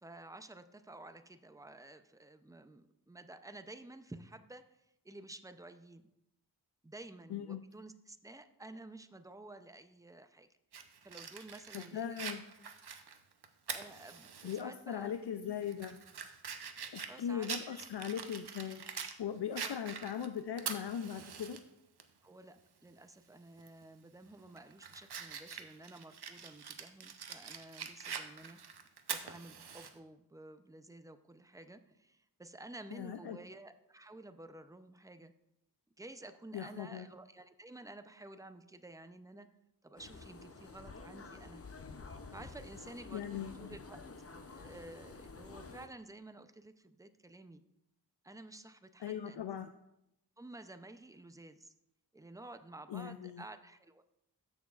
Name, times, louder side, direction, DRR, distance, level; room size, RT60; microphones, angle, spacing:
voice 1, 0.0-6.1 6.8-10.5 11.0-12.3 12.8-12.9 13.7-15.1 15.5-15.6 17.1-17.8 19.6-19.8 22.2-28.8 29.1-35.3 36.0-39.5 39.8-41.6 42.3-44.0 44.5-47.6 48.2-49.7 50.4-51.7 52.1-54.0, right 2 dB, 10° right, 10 dB, 0.5 m, -52 dB
voice 2, 7.3-7.6 11.7-12.4 14.4-16.4 16.9-21.6 32.9-33.4 36.5-37.1 43.1-43.8 49.0-49.7 52.9-53.4, left 8 dB, 70° left, 8 dB, 0.5 m, -40 dB
Fire, 10.7-14.6 15.0-15.1 15.6-19.2 19.6-21.6 22.0-22.1 23.6-23.8 24.3-29.9, right 6 dB, 65° right, 0.8 m, -44 dB
sound 1, 40.0-45.9, left 4 dB, 35° left, 0.7 m, -50 dB
14.0 x 6.3 x 2.4 m, 0.85 s
wide cardioid pair, 50°, 42 cm